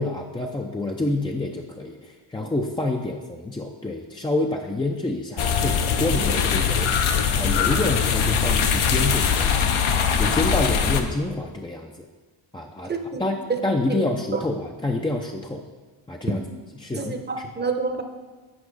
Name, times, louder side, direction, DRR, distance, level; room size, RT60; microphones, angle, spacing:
voice 1, 0.0-6.9 7.4-9.7 10.2-12.1 12.5-12.9 13.2-15.6 16.1-16.4 16.7-17.5, left 2 dB, 10° left, 1 dB, 0.4 m, -28 dB
sound 1, 5.4-11.0, left 7 dB, 75° left, 0.9 m, -21 dB
voice 2, 12.9-13.2 13.9-14.0 17.0-18.0, right 4 dB, 20° right, 5 dB, 0.8 m, -28 dB
8.7 x 5.1 x 4.8 m, 1.3 s
cardioid pair, 90°, 50 cm